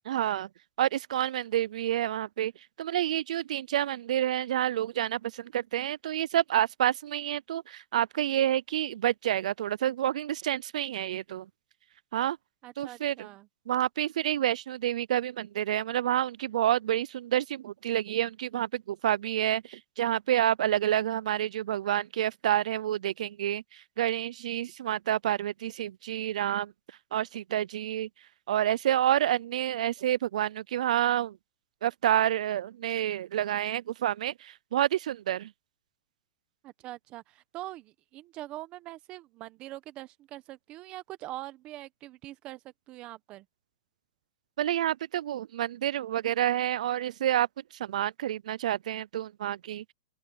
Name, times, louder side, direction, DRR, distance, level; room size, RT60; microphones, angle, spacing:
voice 1, 0.1-0.5 0.8-2.5 2.8-11.5 12.1-12.4 12.8-13.1 13.7-23.6 24.0-26.7 27.1-28.1 28.5-31.3 31.8-35.5 44.6-47.5 47.8-49.9, right 12 dB, 75° right, 0.3 m, -28 dB
voice 2, 12.6-13.5 36.6-43.5, right 16 dB, 25° right, 0.9 m, -43 dB
open air
supercardioid pair, 165°, 4 cm